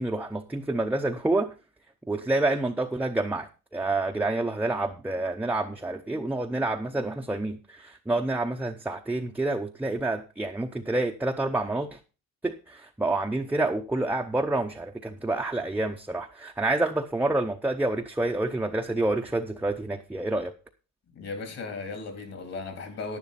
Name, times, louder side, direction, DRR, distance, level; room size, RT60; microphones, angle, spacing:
voice 1, 0.0-1.5 2.1-12.0 12.4-20.5, right 2 dB, 5° right, 0.7 m, -28 dB
voice 2, 21.1-23.2, left 3 dB, 55° left, 3.7 m, -36 dB
10.5 x 10.5 x 4.2 m
cardioid pair, 140°, 31 cm